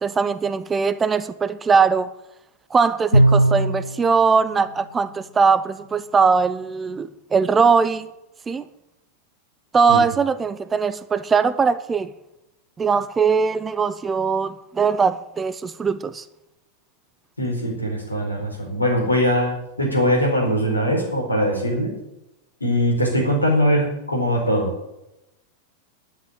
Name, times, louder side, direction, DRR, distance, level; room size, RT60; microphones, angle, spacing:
voice 1, 0.0-2.1 2.7-8.1 8.5-8.6 9.7-12.1 12.8-16.2, right 5 dB, 15° right, 0.6 m, -20 dB
Bowed string instrument, 3.1-4.0, right 1 dB, 90° right, 0.7 m, -16 dB
voice 2, 17.4-21.9 22.6-24.7, equal, 85° left, 4.5 m, -21 dB
11.5 x 9.3 x 9.1 m
figure-of-eight pair, 90°, 0 cm